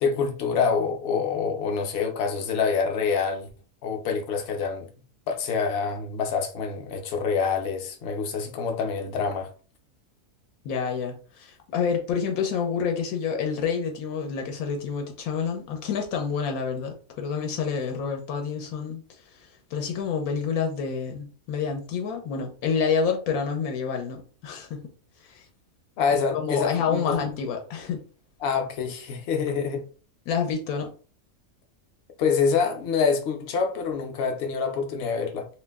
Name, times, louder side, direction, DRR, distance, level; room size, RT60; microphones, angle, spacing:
voice 1, 0.0-3.5 3.8-4.9 5.3-9.5 26.0-27.2 28.4-29.9 32.2-35.5, left 5 dB, 60° left, 0.7 m, -26 dB
voice 2, 10.6-24.9 25.2-25.5 26.3-28.0 30.3-30.9, left 6 dB, 85° left, 1.0 m, -28 dB
2.6 x 2.0 x 3.3 m
omnidirectional pair, 1.5 m